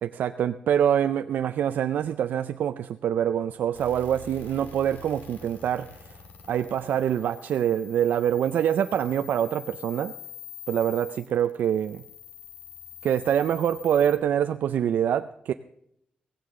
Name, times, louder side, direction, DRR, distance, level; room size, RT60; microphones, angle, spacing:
voice 1, 0.0-6.1 6.5-10.1 10.7-12.0 13.0-15.5, right 9 dB, 80° right, 9 dB, 0.4 m, -25 dB
sound 1, 3.7-14.2, left 7 dB, 90° left, 2.5 m, -45 dB
16.5 x 16.0 x 3.7 m, 0.75 s
cardioid pair, 120°, 3 cm